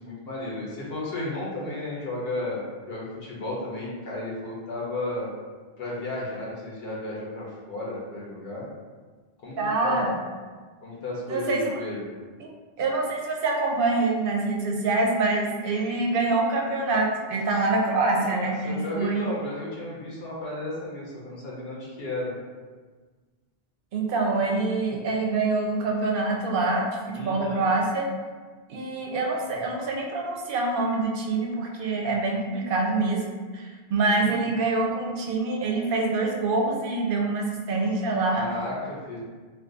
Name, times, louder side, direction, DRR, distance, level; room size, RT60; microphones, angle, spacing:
voice 1, 0.0-5.3 5.8-8.7 9.4-10.1 10.8-12.0 18.1-22.3 27.1-27.6 34.2-34.6 38.3-39.2, left 2 dB, 75° left, -5 dB, 0.9 m, -33 dB
voice 2, 9.6-10.1 11.3-11.8 12.4-12.5 12.8-19.4 23.9-28.1 28.7-33.2 33.5-38.4, right 3 dB, 65° right, 0 dB, 0.7 m, -25 dB
2.5 x 2.3 x 3.7 m, 1.4 s
omnidirectional pair, 1.0 m